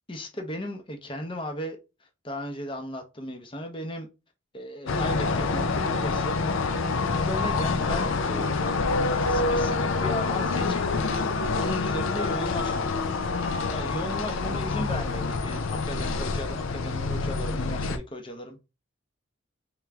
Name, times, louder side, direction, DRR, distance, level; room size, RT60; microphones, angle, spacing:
voice 1, 0.1-1.8 2.2-4.1 4.5-6.4 7.0-8.8 9.3-11.0 11.5-12.9 13.5-18.6, left 1 dB, 25° left, 5 dB, 0.7 m, -36 dB
sound 1, 4.9-18.0, left 3 dB, 65° left, 0.5 m, -27 dB
3.4 x 3.0 x 3.5 m, 0.28 s
head